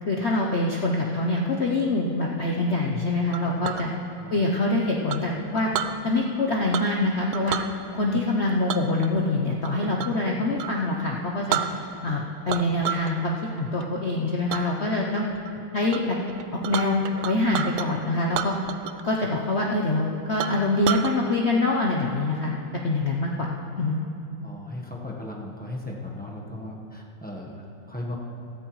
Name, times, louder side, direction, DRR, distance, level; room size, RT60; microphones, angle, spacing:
voice 1, 0.0-3.9 4.3-5.7 6.0-7.6 7.9-11.6 12.0-15.3 15.7-16.2 16.6-18.5 19.0-22.5 22.8-23.5 23.8-24.0, left 2 dB, 75° left, -1 dB, 0.6 m, -25 dB
Chink clink, 3.3-3.9 5.1-6.0 6.7-7.0 7.3-7.7 8.7-10.2 10.6-10.8 11.2-11.3 11.5-12.1 12.5-13.1 13.5-13.9 14.5-14.6 15.2-15.5 15.9-16.0 16.3-17.9 18.3-19.1 19.4-19.5 19.9-20.0 20.4-21.1, right 10 dB, 85° right, 0.8 m, -30 dB
voice 2, 24.4-28.1, left 1 dB, 10° left, -3 dB, 0.6 m, -37 dB
16.0 x 14.0 x 3.1 m, 2.7 s
omnidirectional pair, 2.3 m